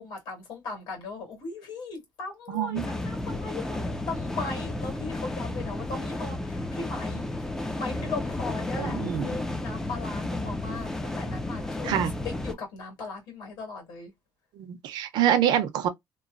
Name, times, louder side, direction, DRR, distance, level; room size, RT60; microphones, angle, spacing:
voice 1, 0.0-12.0 12.2-14.1, left 4 dB, 75° left, 1.8 m, -38 dB
voice 2, 2.5-2.9 8.7-9.3 11.8-12.1 14.6-15.9, right 10 dB, 80° right, 0.6 m, -25 dB
sound 1, 2.8-12.5, left 2 dB, 5° left, 0.3 m, -32 dB
3.0 x 2.0 x 2.4 m
cardioid pair, 165°, 7 cm